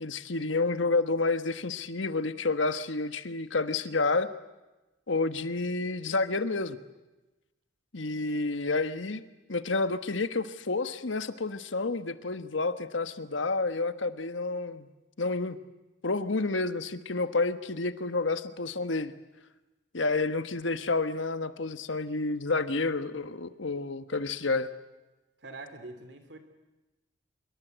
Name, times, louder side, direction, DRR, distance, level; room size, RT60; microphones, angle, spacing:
voice 1, 0.0-4.3 5.1-6.8 7.9-9.2 9.5-14.9 15.2-15.6 16.0-19.1 19.9-24.7, left 3 dB, 85° left, 11 dB, 1.3 m, -29 dB
voice 2, 25.4-26.4, right 2 dB, 65° right, 9 dB, 3.2 m, -44 dB
25.0 x 23.0 x 8.1 m, 1.1 s
head